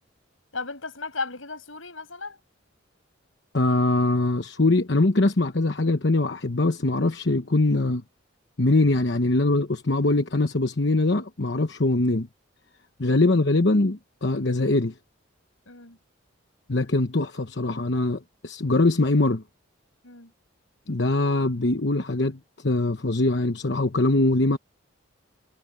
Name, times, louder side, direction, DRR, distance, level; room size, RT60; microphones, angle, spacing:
voice 1, 0.5-2.4 15.7-16.0 20.0-20.3, left 3 dB, 85° left, 7.2 m, -35 dB
voice 2, 3.5-8.0 8.6-12.3 13.0-14.9 16.7-19.4 20.9-24.6, left 2 dB, 60° left, 1.1 m, -22 dB
head